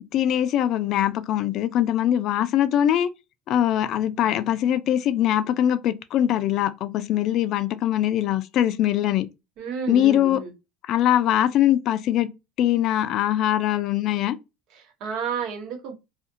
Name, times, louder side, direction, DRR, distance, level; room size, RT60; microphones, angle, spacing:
voice 1, 0.1-3.1 3.5-9.3 9.9-10.4 10.9-12.3 12.6-14.4, left 11 dB, 55° left, 0.4 m, -22 dB
voice 2, 9.6-10.5 14.7-15.9, right 6 dB, 60° right, 1.1 m, -31 dB
2.4 x 2.4 x 2.7 m
supercardioid pair, 95°, 0 cm